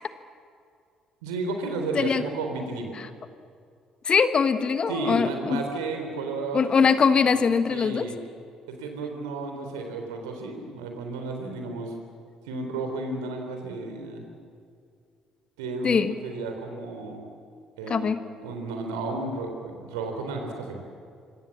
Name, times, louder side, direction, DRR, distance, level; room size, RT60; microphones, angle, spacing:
voice 1, 1.2-2.9 4.9-6.9 7.7-8.2 8.7-12.0 12.5-14.2 15.6-17.2 17.8-18.1 18.4-20.8, right 3 dB, 70° right, 4 dB, 3.7 m, -32 dB
voice 2, 4.0-5.6 6.5-8.1 15.8-16.1 17.9-18.2, left 6 dB, 40° left, 11 dB, 1.4 m, -22 dB
26.0 x 26.0 x 7.4 m, 2.3 s
figure-of-eight pair, 45°, 2 cm